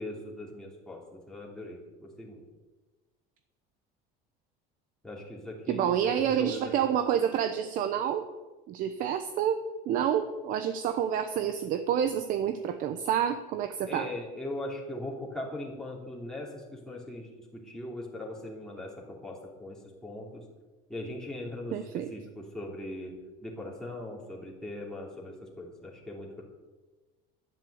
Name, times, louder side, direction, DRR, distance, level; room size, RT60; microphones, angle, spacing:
voice 1, 0.0-2.4 5.0-6.7 13.9-20.4 20.9-23.1 23.4-26.4, left 1 dB, 5° left, -3 dB, 2.8 m, -40 dB
voice 2, 5.7-8.3 8.7-9.6 9.9-14.1 21.7-22.1, right 9 dB, 45° right, 9 dB, 0.9 m, -28 dB
11.5 x 11.0 x 7.9 m, 1.2 s
cardioid pair, 160°, 19 cm